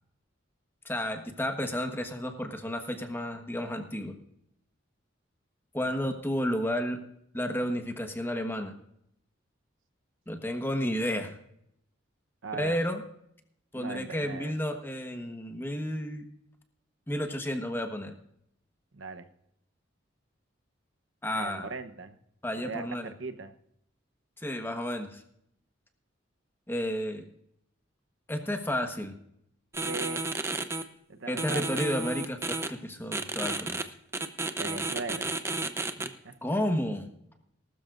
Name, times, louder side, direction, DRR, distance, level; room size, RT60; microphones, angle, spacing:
voice 1, 0.8-4.1 5.7-7.0 7.3-8.7 10.3-11.3 12.6-13.0 13.7-16.3 17.1-18.1 21.2-21.7 22.4-23.1 24.4-25.2 26.7-27.2 28.3-29.2 31.3-33.8 36.4-37.1, equal, 10° left, 5 dB, 1.2 m, -31 dB
voice 2, 12.4-12.8 13.7-14.6 18.9-19.3 21.3-22.2 22.6-22.8 23.2-23.5 29.8-30.2 31.1-31.8 34.6-35.3 36.0-36.3, right 4 dB, 85° right, 9 dB, 0.9 m, -39 dB
sound 1, 29.7-30.8 31.4-32.7 33.1-33.8 34.1-36.1, right 2 dB, 15° right, 0.7 m, -32 dB
19.5 x 12.5 x 2.5 m, 0.74 s
head